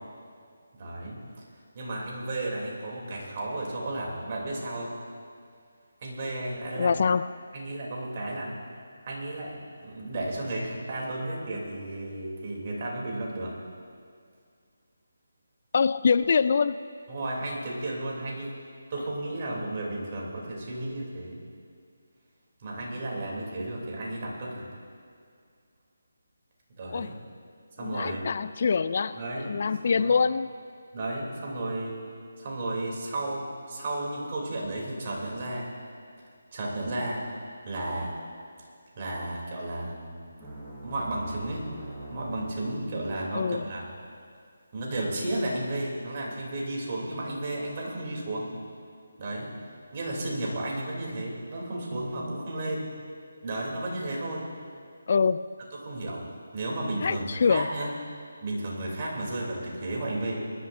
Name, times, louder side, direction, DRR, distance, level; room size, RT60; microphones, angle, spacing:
voice 1, 0.8-1.2 1.7-4.9 6.0-7.0 7.5-8.5 9.0-13.6 17.1-18.5 18.9-21.4 22.6-24.7 26.8-27.1 27.8-28.2 29.1-29.6 29.8-30.1 30.9-32.0 32.4-35.7 36.5-37.2 37.6-38.2 39.0-40.3 40.8-41.7 42.1-43.9 44.7-48.5 49.2-49.5 49.9-52.9 53.4-54.5 55.7-56.2 56.5-57.9 58.4-60.5, right 1 dB, 40° right, -3 dB, 3.2 m, -33 dB
voice 2, 6.8-7.3 15.7-16.8 26.9-27.1 27.8-30.5 43.3-43.6 55.1-55.4 57.0-57.7, left 5 dB, 50° left, 15 dB, 0.3 m, -24 dB
sound 1, 40.4-42.7, right 1 dB, 15° right, 3.7 m, -42 dB
23.0 x 12.0 x 2.7 m, 2.2 s
figure-of-eight pair, 155°, 0 cm